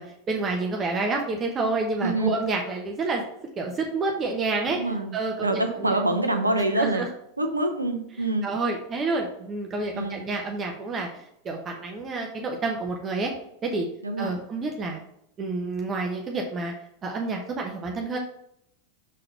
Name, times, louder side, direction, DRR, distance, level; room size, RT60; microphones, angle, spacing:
voice 1, 0.0-3.2 3.6-6.0 6.8-7.1 8.2-13.3 13.6-13.9 14.2-15.0 15.4-16.7 17.0-18.2, right 3 dB, 30° right, 1 dB, 0.9 m, -29 dB
voice 2, 2.0-2.3 4.7-5.1 5.4-7.0 7.4-8.5 9.9-10.3 14.0-14.3, right 2 dB, 85° right, 6 dB, 0.8 m, -25 dB
6.4 x 3.9 x 4.4 m, 0.75 s
figure-of-eight pair, 85°, 0 cm